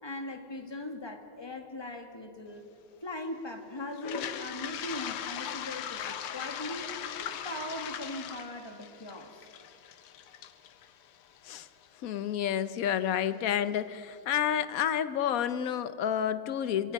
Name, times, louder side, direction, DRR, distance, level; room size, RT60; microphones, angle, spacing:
voice 1, 0.0-2.7 3.0-6.9 7.2-9.5, left 1 dB, 10° left, 3 dB, 1.8 m, -40 dB
Toilet flush, 3.9-11.9, left 9 dB, 85° left, 1.9 m, -39 dB
voice 2, 12.0-16.9, left 9 dB, 65° left, 13 dB, 0.8 m, -30 dB
26.5 x 22.5 x 5.4 m, 2.4 s
omnidirectional pair, 2.4 m